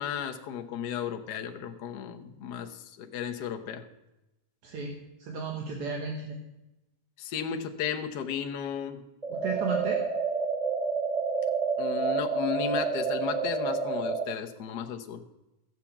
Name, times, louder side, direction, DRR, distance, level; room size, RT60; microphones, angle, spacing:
voice 1, 0.0-3.8 7.2-9.0 11.8-15.2, left 8 dB, 65° left, 5 dB, 1.0 m, -34 dB
voice 2, 4.6-6.4 9.3-10.0, right 5 dB, 75° right, 2 dB, 2.6 m, -34 dB
sound 1, 9.2-14.2, right 4 dB, 25° right, 0.8 m, -29 dB
14.0 x 7.6 x 7.2 m, 0.96 s
omnidirectional pair, 3.3 m